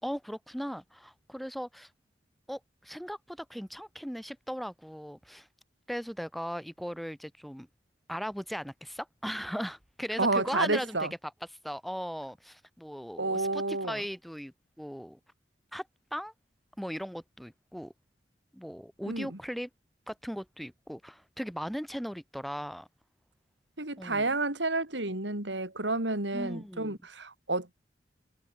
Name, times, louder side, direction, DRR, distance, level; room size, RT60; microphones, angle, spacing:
voice 1, 0.0-1.9 2.5-5.5 5.9-7.7 8.1-11.1 11.6-15.2 15.7-16.3 16.8-17.9 18.5-19.7 20.1-22.9 24.0-24.3 26.3-27.0, equal, ahead, 4.9 m, -38 dB
voice 2, 10.2-11.1 13.2-14.0 19.1-19.4 23.8-27.7, right 2 dB, 80° right, 5.1 m, -30 dB
head